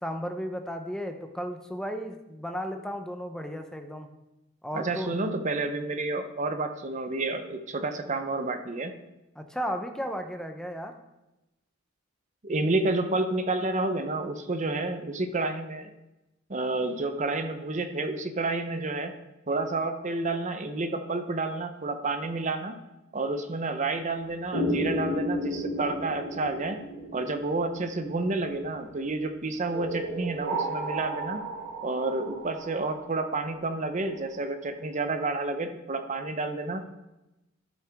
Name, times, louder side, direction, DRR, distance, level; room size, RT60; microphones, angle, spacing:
voice 1, 0.0-4.1 4.6-5.1 9.4-10.9, equal, 5° left, 5 dB, 0.7 m, -34 dB
voice 2, 4.7-9.0 12.4-15.9 16.5-19.1 19.5-22.8 23.1-26.8 27.1-31.4 31.8-36.8, right 2 dB, 35° right, 8 dB, 0.7 m, -30 dB
sound 1, 24.5-28.8 29.7-33.5, equal, 60° right, 3.4 m, -33 dB
12.5 x 5.9 x 3.5 m, 0.98 s
head